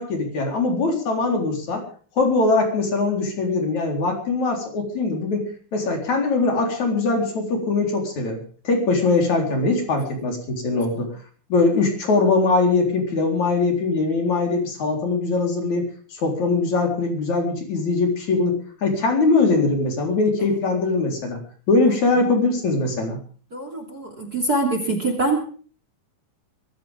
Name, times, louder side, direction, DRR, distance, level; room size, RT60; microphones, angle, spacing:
voice 1, 0.0-1.8 2.2-8.4 8.6-11.1 11.5-21.4 21.7-23.2, left 3 dB, 50° left, 3 dB, 5.2 m, -21 dB
voice 2, 23.5-25.4, right 2 dB, 25° right, 5 dB, 3.0 m, -24 dB
23.0 x 14.5 x 3.6 m, 0.42 s
omnidirectional pair, 4.1 m